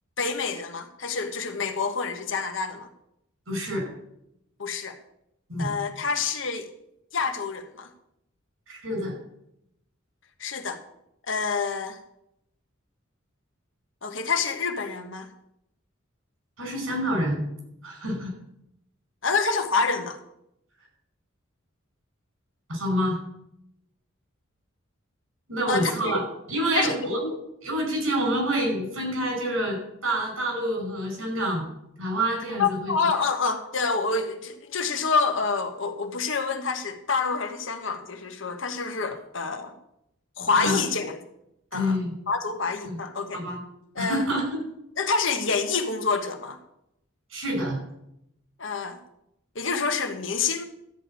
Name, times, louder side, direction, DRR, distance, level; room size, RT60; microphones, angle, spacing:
voice 1, 0.2-2.9 4.6-5.0 5.6-6.7 7.1-7.9 10.4-10.8 11.3-12.0 14.0-15.3 19.2-20.2 25.7-26.3 26.7-27.4 32.6-39.7 40.4-41.2 41.7-42.0 42.3-43.4 43.9-44.2 45.0-46.6 48.6-49.0 49.5-50.7, left 4 dB, 70° left, 6 dB, 1.3 m, -27 dB
voice 2, 3.5-3.8 5.5-5.7 8.7-9.1 16.6-17.4 17.8-18.3 22.7-23.2 25.5-26.2 26.5-27.2 27.6-29.8 30.0-31.6 32.0-32.9 40.5-40.8 41.7-42.1 42.9-43.0 43.3-43.6 44.0-44.6 47.3-47.8, equal, 90° right, 1 dB, 5.4 m, -27 dB
13.0 x 5.2 x 8.9 m, 0.80 s
head